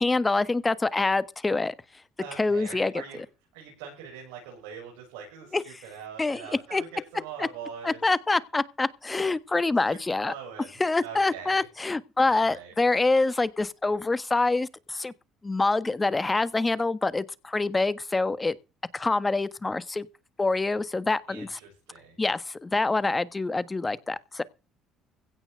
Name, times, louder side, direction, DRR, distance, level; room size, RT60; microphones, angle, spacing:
voice 1, 0.0-1.7 2.4-2.9 5.5-5.8 6.2-6.8 7.4-7.5 7.8-10.3 10.8-15.1 15.4-18.5 18.9-20.1 20.4-21.6 22.2-24.4, left 3 dB, 20° left, 1.4 m, -26 dB
voice 2, 2.2-3.2 3.5-8.0 9.9-10.0 10.2-11.6 12.2-12.7 21.3-22.2, right 7 dB, 90° right, 7.3 m, -43 dB
16.5 x 5.9 x 7.8 m
supercardioid pair, 80°, 0 cm